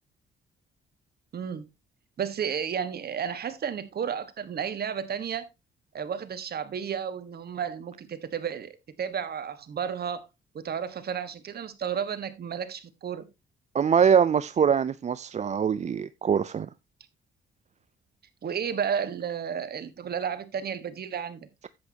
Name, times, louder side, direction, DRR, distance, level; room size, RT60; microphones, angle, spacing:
voice 1, 1.3-1.7 2.2-5.5 5.9-10.3 10.5-13.3 18.4-21.5, right 7 dB, 50° right, 1.5 m, -32 dB
voice 2, 13.7-16.7, right 7 dB, 35° right, 0.4 m, -23 dB
10.5 x 8.3 x 2.8 m
cardioid pair, 90°, 20 cm